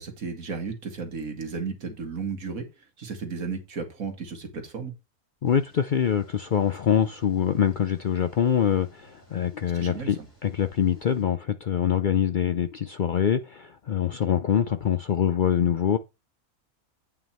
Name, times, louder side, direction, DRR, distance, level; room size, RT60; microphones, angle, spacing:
voice 1, 0.0-2.6 3.0-4.9 9.7-10.1, right 5 dB, 70° right, 2.3 m, -34 dB
voice 2, 5.4-16.0, left 8 dB, 70° left, 0.4 m, -24 dB
sound 1, 5.4-11.2, right 1 dB, 10° left, 6.1 m, -58 dB
9.4 x 5.7 x 4.3 m
omnidirectional pair, 1.5 m